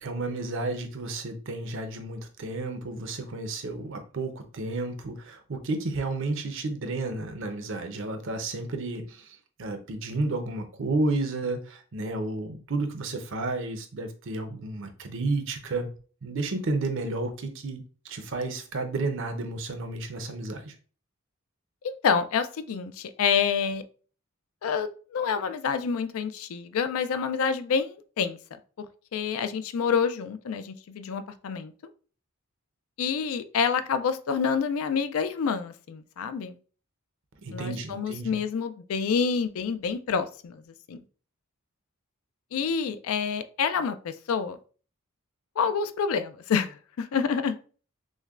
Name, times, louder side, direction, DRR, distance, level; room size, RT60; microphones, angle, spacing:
voice 1, 0.0-15.9 16.2-20.8 37.4-38.4, right 2 dB, 60° right, 7 dB, 0.6 m, -32 dB
voice 2, 21.8-23.8 24.6-28.4 28.8-28.9 29.1-31.7 33.0-36.6 37.5-40.6 40.9-41.0 42.5-44.6 45.6-47.6, left 6 dB, 70° left, 11 dB, 0.4 m, -28 dB
6.2 x 2.2 x 2.4 m, 0.40 s
head